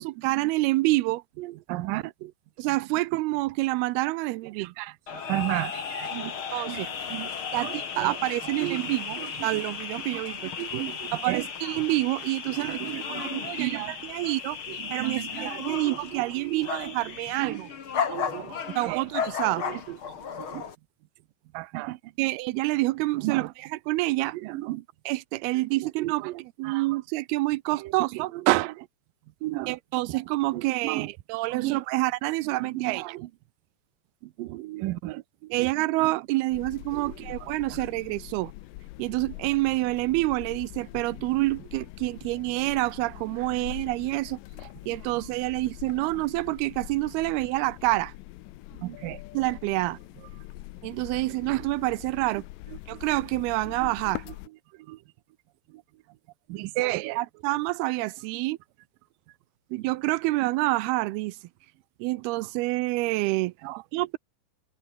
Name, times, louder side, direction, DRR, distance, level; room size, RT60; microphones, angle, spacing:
voice 1, 0.0-1.2 2.6-4.7 6.5-6.9 7.5-10.5 11.1-12.8 13.1-14.6 14.9-17.7 18.8-19.7 22.2-24.4 25.1-28.3 29.7-33.2 35.5-38.5 39.0-44.4 44.9-48.1 49.3-50.0 50.8-52.4 52.9-54.2 56.8-58.6 59.7-61.4 62.0-63.5 63.9-64.2, right 20 dB, 90° right, 2.7 m, -27 dB
voice 2, 1.4-2.3 4.6-6.3 6.6-7.3 7.6-8.2 8.5-8.9 9.2-9.3 9.5-9.6 10.1-11.5 12.5-14.0 14.7-16.9 17.4-17.6 18.1-18.6 18.9-19.0 19.6-20.0 20.4-20.6 21.5-22.0 23.2-23.5 24.4-24.8 26.0-26.9 27.8-27.9 28.5-28.9 29.4-29.8 30.5-31.1 31.5-31.8 32.7-33.3 34.4-35.7 36.0-36.1 37.0-37.2 37.7-37.8 48.8-49.2 52.9-53.0 54.9-55.0 56.5-57.2 63.6-63.8, right 19 dB, 75° right, 2.3 m, -33 dB
sound 1, 5.1-20.8, left 7 dB, 40° left, 2.3 m, -35 dB
sound 2, 36.5-54.5, left 18 dB, 80° left, 2.1 m, -43 dB
omnidirectional pair, 4.4 m